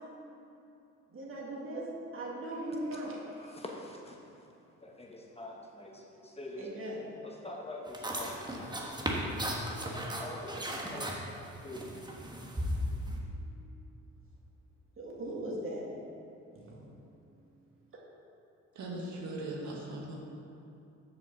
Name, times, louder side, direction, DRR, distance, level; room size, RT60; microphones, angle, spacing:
voice 1, 1.1-1.9 2.1-3.6 6.6-7.0 15.0-15.8 16.7-16.8, right 1 dB, 45° right, -3 dB, 2.0 m, -39 dB
voice 2, 2.7-7.0 7.2-11.8, left 1 dB, 20° left, -1 dB, 1.0 m, -46 dB
sound 1, 7.9-13.2, equal, 15° right, 1.1 m, -36 dB
voice 3, 18.7-20.2, right 2 dB, 70° right, -2 dB, 1.6 m, -39 dB
7.2 x 5.0 x 6.8 m, 2.8 s
cardioid pair, 90°, 30 cm